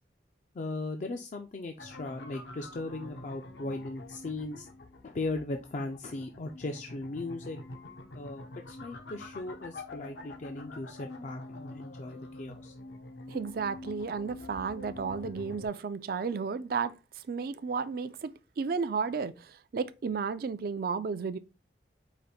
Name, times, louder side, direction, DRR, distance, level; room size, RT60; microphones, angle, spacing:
voice 1, 0.5-4.7 5.0-7.6 8.1-12.8, left 2 dB, 45° left, 0.4 m, -38 dB
sound 1, 1.8-15.7, left 2 dB, 75° left, 0.7 m, -46 dB
voice 2, 13.3-17.0 17.3-18.3 18.6-21.4, right 5 dB, 55° right, 0.4 m, -33 dB
5.0 x 2.5 x 4.1 m
head